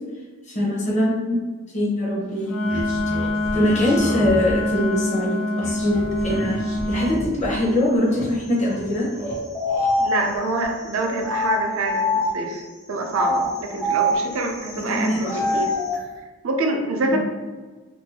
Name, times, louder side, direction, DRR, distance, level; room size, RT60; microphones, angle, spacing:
voice 1, 0.5-1.4 1.7-2.5 3.5-6.6 6.9-9.1 14.8-15.6 17.1-17.2, left 1 dB, 35° left, -3 dB, 0.7 m, -23 dB
Wind instrument woodwind instrument, 2.4-7.2, left 2 dB, 90° left, 0.4 m, -25 dB
sound 1, 2.6-4.8 5.6-7.6 7.9-8.8 9.1-9.9, equal, 60° left, 0.9 m, -32 dB
sound 2, 9.2-12.6 13.1-16.0, left 1 dB, ahead, 0.3 m, -25 dB
voice 2, 10.0-12.6 12.9-15.7 16.4-17.2, right 2 dB, 75° right, 2 dB, 0.4 m, -26 dB
2.6 x 2.2 x 2.7 m, 1.3 s
head